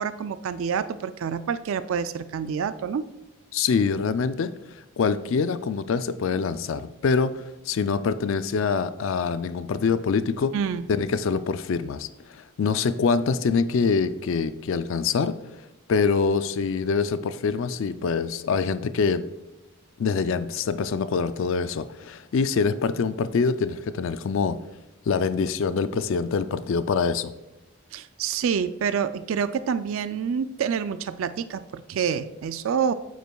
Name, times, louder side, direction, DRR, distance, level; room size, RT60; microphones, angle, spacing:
voice 1, 0.0-3.1 10.5-10.9 27.9-32.9, right 7 dB, 65° right, 13 dB, 0.3 m, -27 dB
voice 2, 3.5-4.5 5.0-10.5 10.9-12.1 12.3-15.4 15.9-19.2 20.0-24.6 25.1-27.3, left 5 dB, 60° left, 12 dB, 0.3 m, -25 dB
8.8 x 8.2 x 2.3 m, 1.0 s
head